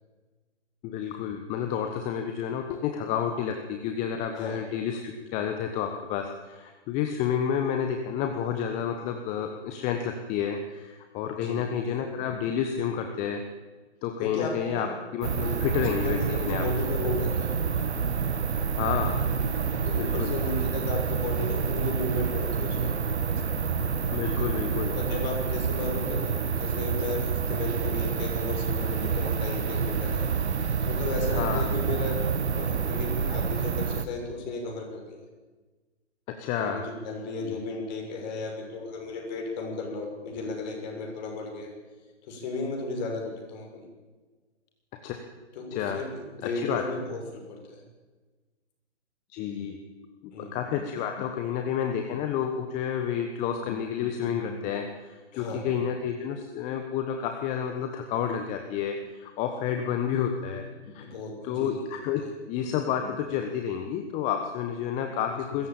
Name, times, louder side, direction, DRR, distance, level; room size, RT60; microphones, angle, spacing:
voice 1, 0.8-13.4 14.0-14.9 15.1-16.6 18.8-19.2 19.9-20.3 24.1-24.9 31.3-31.7 36.3-36.8 37.4-37.6 45.0-45.2 45.7-46.0 46.5-46.8 49.3-49.8 50.4-61.0 61.4-65.7, left 8 dB, 20° left, 5 dB, 1.3 m, -30 dB
voice 2, 4.3-4.6 11.4-12.0 14.2-14.9 15.4-15.7 16.0-17.5 19.8-23.0 24.3-30.2 30.8-35.2 36.6-41.7 42.3-43.7 45.5-47.8 50.3-50.6 55.3-55.6 61.0-61.8 62.2-62.3, left 3 dB, 40° left, 1 dB, 6.6 m, -34 dB
sound 1, 15.2-34.1, right 6 dB, 65° right, 1.5 m, -28 dB
22.0 x 14.5 x 9.0 m, 1.3 s
figure-of-eight pair, 130°, 35 cm